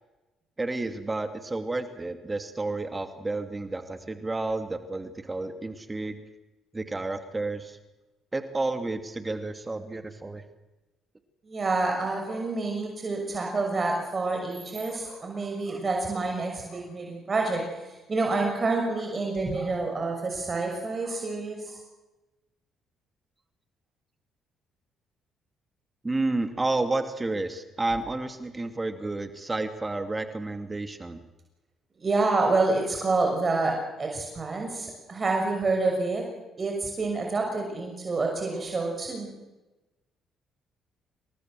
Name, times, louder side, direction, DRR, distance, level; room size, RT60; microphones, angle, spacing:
voice 1, 0.6-6.2 6.7-7.8 8.3-10.4 26.0-31.2, right 2 dB, 20° right, 8 dB, 2.7 m, -31 dB
voice 2, 11.5-17.6 18.1-21.8 32.0-36.2 36.6-39.3, right 3 dB, 35° right, 2 dB, 6.4 m, -28 dB
28.0 x 20.0 x 7.8 m, 1.1 s
supercardioid pair, 65°, 0 cm